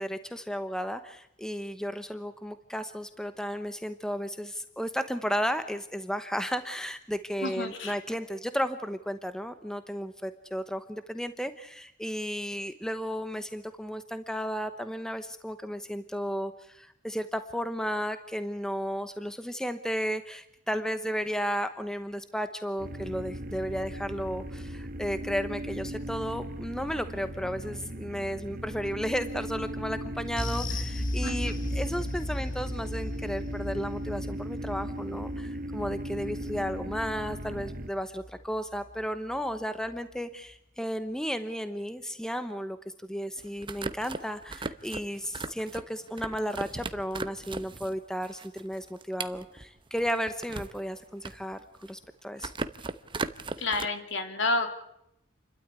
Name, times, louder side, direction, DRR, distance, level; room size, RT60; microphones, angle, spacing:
voice 1, 0.0-42.8 43.0-52.5, equal, 5° left, 10 dB, 0.9 m, -34 dB
voice 2, 7.4-7.9 31.2-31.5 53.6-54.7, left 2 dB, 65° left, 6 dB, 3.2 m, -30 dB
sound 1, 22.8-37.9, equal, 45° right, 1.1 m, -38 dB
sound 2, 30.4-39.0 39.3-39.5 39.9-40.0, left 1 dB, 40° left, 1.6 m, -36 dB
sound 3, 43.4-48.0 48.2-50.8 51.1-52.1 52.4-53.9, right 3 dB, 25° right, 0.8 m, -37 dB
29.0 x 12.5 x 9.7 m, 0.80 s
head